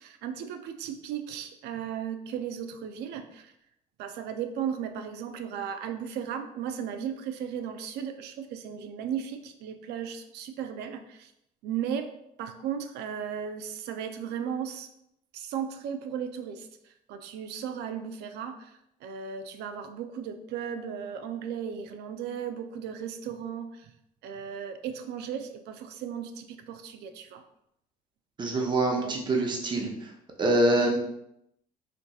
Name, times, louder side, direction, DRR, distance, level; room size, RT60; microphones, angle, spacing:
voice 1, 0.0-3.5 4.0-11.3 11.6-12.1 12.4-14.9 15.3-16.7 17.1-18.7 19.0-23.9 24.2-27.4 28.9-29.2 29.8-29.9 30.8-30.9, right 8 dB, 80° right, 7 dB, 0.4 m, -36 dB
voice 2, 28.4-30.1 30.4-31.0, right 1 dB, 25° right, 1 dB, 0.7 m, -25 dB
4.4 x 2.7 x 2.3 m, 0.79 s
cardioid pair, 110°, 17 cm